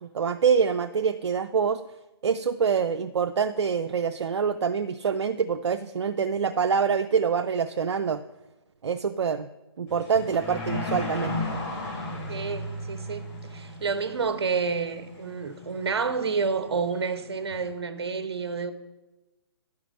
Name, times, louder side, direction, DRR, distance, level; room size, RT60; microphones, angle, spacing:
voice 1, 0.0-1.8 2.2-8.2 8.8-9.5 9.8-11.3, right 6 dB, 85° right, 0.4 m, -25 dB
sound 1, 9.9-17.7, left 1 dB, 40° left, 3.1 m, -35 dB
voice 2, 12.3-13.2 13.5-18.7, right 5 dB, 70° right, 0.9 m, -29 dB
10.5 x 4.7 x 6.2 m
hypercardioid pair, 145°, 14 cm